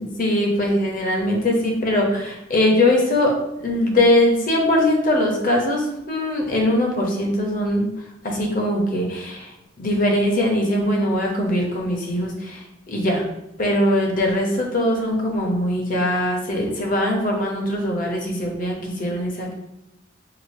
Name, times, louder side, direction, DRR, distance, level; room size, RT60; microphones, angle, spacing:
voice 1, 0.2-7.9 8.2-9.5 9.8-13.2 13.6-19.5, left 1 dB, 45° left, 0 dB, 0.7 m, -21 dB
4.9 x 2.0 x 2.6 m, 0.88 s
head